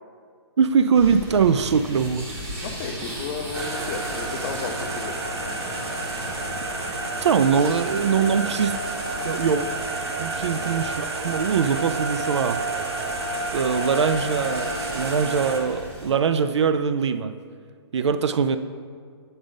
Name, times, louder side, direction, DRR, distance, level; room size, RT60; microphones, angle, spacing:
voice 1, 0.6-2.3 7.2-8.8 9.2-9.7 10.2-12.6 13.5-17.3 17.9-18.6, right 6 dB, 85° right, 11 dB, 0.4 m, -22 dB
sound 1, 1.0-16.1, right 1 dB, 20° right, 0.9 m, -38 dB
voice 2, 2.6-5.2 10.6-10.7, left 6 dB, 25° left, 1 dB, 0.4 m, -33 dB
sound 2, 3.5-15.6, right 2 dB, 70° right, 1.1 m, -30 dB
8.0 x 3.9 x 5.1 m, 2.1 s
hypercardioid pair, 155°, 14 cm